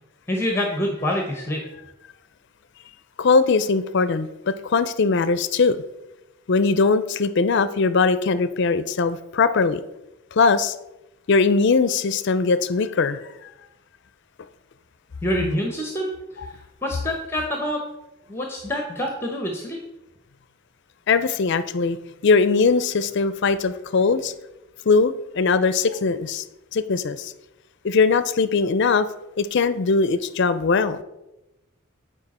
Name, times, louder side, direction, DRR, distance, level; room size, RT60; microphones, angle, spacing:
voice 1, 0.3-1.6 15.2-16.1 16.8-17.8 18.3-19.8, left 1 dB, 10° left, 2 dB, 0.8 m, -26 dB
voice 2, 3.2-5.8 6.5-9.8 10.3-10.8 11.3-13.2 16.4-16.5 21.1-22.0 22.2-24.3 24.8-26.4 26.7-27.3 27.8-29.1 29.4-31.0, left 4 dB, 55° left, 13 dB, 0.4 m, -20 dB
8.9 x 4.9 x 4.2 m, 0.94 s
head